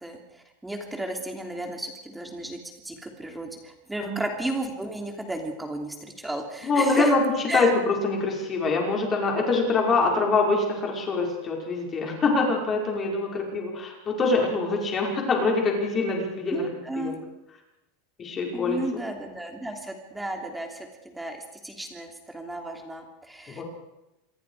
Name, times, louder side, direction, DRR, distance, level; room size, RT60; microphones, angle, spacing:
voice 1, 0.0-7.1 7.5-7.7 13.3-13.5 16.5-17.2 18.5-23.6, right 1 dB, 5° right, 3 dB, 3.1 m, -34 dB
voice 2, 6.6-7.2 7.5-16.6 17.0-17.1 18.2-18.8 23.5-23.6, left 3 dB, 20° left, 0 dB, 5.5 m, -24 dB
27.0 x 22.5 x 5.0 m, 0.91 s
supercardioid pair, 165°, 0 cm